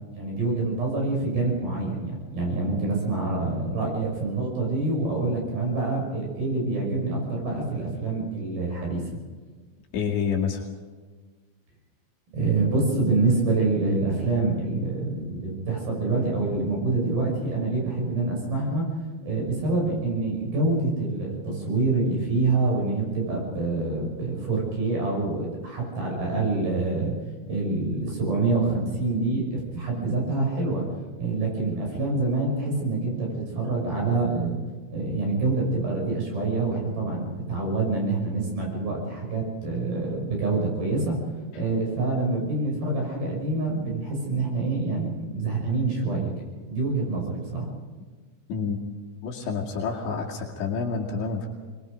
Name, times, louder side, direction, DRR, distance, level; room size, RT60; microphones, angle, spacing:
voice 1, 0.2-9.0 12.3-18.8 19.2-27.1 27.5-30.8 31.2-34.6 34.9-41.2 41.5-46.3 46.7-47.7, right 3 dB, 50° right, -1 dB, 7.7 m, -26 dB
voice 2, 9.9-10.6 48.5-48.8 49.2-51.5, left 5 dB, 65° left, -1 dB, 4.2 m, -28 dB
25.5 x 21.0 x 5.2 m, 1.5 s
omnidirectional pair, 5.7 m